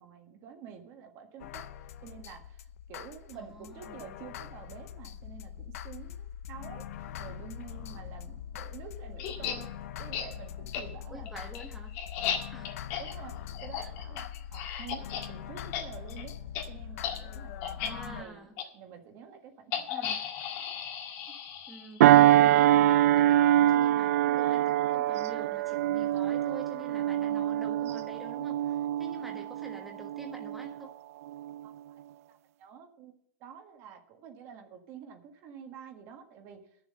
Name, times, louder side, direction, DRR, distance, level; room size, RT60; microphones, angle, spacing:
voice 1, 0.0-1.7 2.0-6.8 7.2-11.5 13.0-16.4 16.7-20.1 31.6-31.9 32.3-33.1 33.4-36.7, right 7 dB, 40° right, 5 dB, 1.5 m, -48 dB
sound 1, 1.4-18.2, left 9 dB, 85° left, 0.8 m, -42 dB
voice 2, 3.3-4.1 11.1-11.9 12.5-12.8 13.8-13.9 17.8-18.6 19.9-20.2 21.7-30.9, right 1 dB, ahead, 0 dB, 1.3 m, -47 dB
sound 2, 9.2-9.6 10.1-10.3 10.7-10.8 11.3-15.3 15.6-15.8 16.1-16.2 16.5-16.6 17.0-17.2 17.6-17.9 18.6-18.7 19.7-22.1, left 8 dB, 45° left, 1.9 m, -35 dB
sound 3, 22.0-30.9 31.3-31.5, right 13 dB, 80° right, 0.4 m, -24 dB
11.5 x 7.1 x 7.5 m, 0.68 s
supercardioid pair, 170°, 8 cm